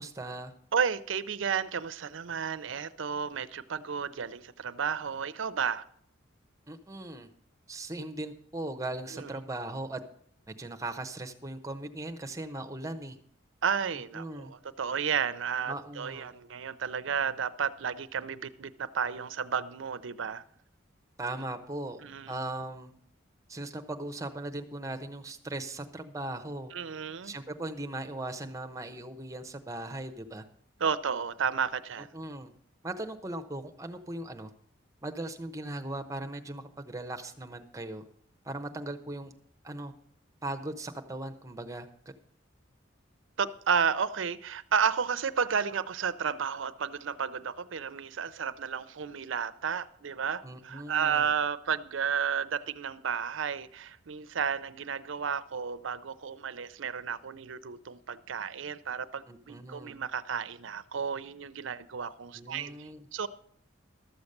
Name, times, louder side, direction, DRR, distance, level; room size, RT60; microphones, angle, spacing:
voice 1, 0.0-0.5 6.7-7.3 7.7-10.0 10.5-13.2 14.1-14.5 15.7-16.3 21.2-22.0 22.3-22.9 23.5-26.7 27.2-30.4 32.1-32.5 32.8-34.5 35.0-38.0 38.4-39.3 39.6-39.9 40.4-41.9 50.4-51.3 59.3-60.0 62.3-63.0, right 2 dB, 15° right, 6 dB, 0.9 m, -38 dB
voice 2, 0.7-5.8 9.1-9.3 13.6-20.4 22.0-22.3 26.7-27.3 30.8-32.1 43.4-63.3, right 6 dB, 75° right, 14 dB, 0.6 m, -32 dB
13.0 x 7.1 x 6.6 m, 0.63 s
head